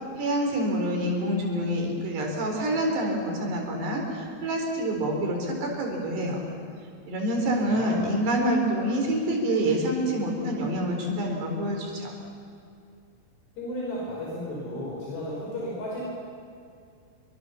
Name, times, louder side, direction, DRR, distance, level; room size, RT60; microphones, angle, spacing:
voice 1, 0.2-6.4 7.1-12.1, right 1 dB, 80° right, 1 dB, 6.4 m, -27 dB
voice 2, 7.7-8.1 13.6-16.0, left 1 dB, 80° left, -4 dB, 7.2 m, -34 dB
28.0 x 25.0 x 7.2 m, 2.4 s
omnidirectional pair, 4.8 m